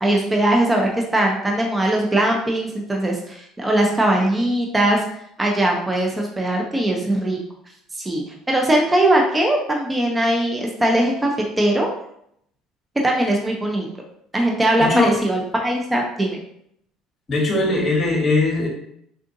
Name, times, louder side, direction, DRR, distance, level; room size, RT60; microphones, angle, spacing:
voice 1, 0.0-5.0 5.4-7.4 8.0-11.9 13.0-13.9 14.3-16.4, right 1 dB, 15° right, 0 dB, 0.5 m, -20 dB
voice 2, 14.8-15.1 17.3-18.7, left 2 dB, 30° left, -1 dB, 1.1 m, -20 dB
3.6 x 2.4 x 2.6 m, 0.71 s
cardioid pair, 125°, 0 cm